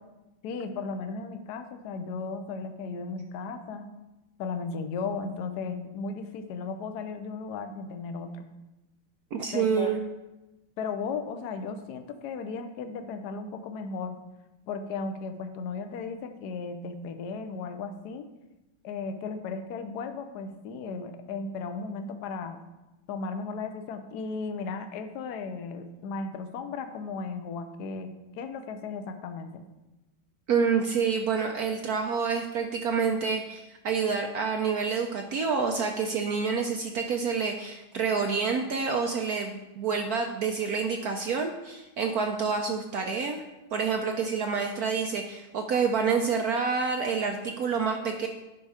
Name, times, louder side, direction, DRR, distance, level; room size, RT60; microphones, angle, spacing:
voice 1, 0.4-3.9 4.4-8.5 9.5-9.9 10.8-14.2 14.7-18.3 18.8-22.6 23.1-29.6, left 4 dB, 65° left, 7 dB, 1.1 m, -35 dB
voice 2, 9.3-10.0 30.5-43.4 43.7-48.3, right 5 dB, 70° right, 4 dB, 0.9 m, -28 dB
10.5 x 5.4 x 4.9 m, 1.0 s
omnidirectional pair, 2.3 m